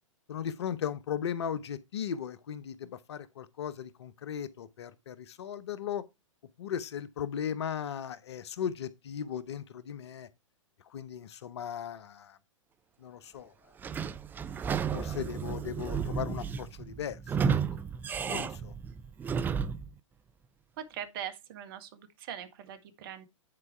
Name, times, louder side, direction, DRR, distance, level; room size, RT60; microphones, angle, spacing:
voice 1, 0.3-6.0 6.6-10.3 10.8-12.4 13.0-13.5 14.9-17.6 18.3-18.8, left 8 dB, 55° left, 0.8 m, -37 dB
Sliding door / Squeak, 13.8-19.9, right 6 dB, 10° right, 0.5 m, -33 dB
voice 2, 20.8-23.3, right 9 dB, 45° right, 1.7 m, -41 dB
9.9 x 4.6 x 4.4 m
figure-of-eight pair, 105°, 17 cm